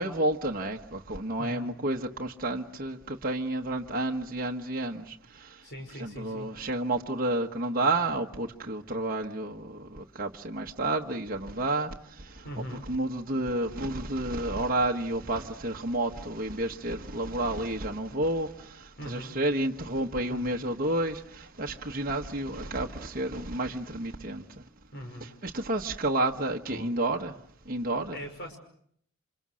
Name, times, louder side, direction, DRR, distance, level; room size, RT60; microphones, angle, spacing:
voice 1, 0.0-5.7 6.0-12.4 12.7-24.6 25.4-27.4 27.6-28.2, right 2 dB, 40° right, 1 dB, 1.3 m, -30 dB
voice 2, 1.4-1.7 5.6-6.5 12.4-12.8 19.0-19.4 20.3-20.6 24.9-25.3 26.7-26.9 28.1-28.6, equal, 50° left, 5 dB, 5.5 m, -40 dB
28.5 x 26.5 x 6.4 m, 0.67 s
head